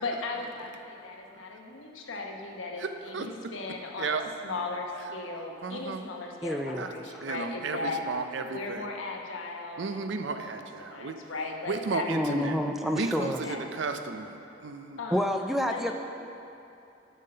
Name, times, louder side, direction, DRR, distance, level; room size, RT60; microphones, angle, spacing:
voice 1, 0.0-8.0 8.5-10.4 10.8-12.5 13.2-13.8 15.0-15.2 15.7-16.0, left 3 dB, 85° left, 1 dB, 1.0 m, -37 dB
voice 2, 4.0-4.3 5.6-6.0 6.8-6.9 7.2-8.8 9.8-11.2 11.7-12.5 12.9-14.4 14.6-15.0, right 4 dB, 65° right, 7 dB, 0.5 m, -33 dB
voice 3, 6.4-6.9 7.1-7.2 12.1-13.4 15.1-16.0, equal, ahead, 4 dB, 0.3 m, -28 dB
7.3 x 5.7 x 6.7 m, 2.8 s
head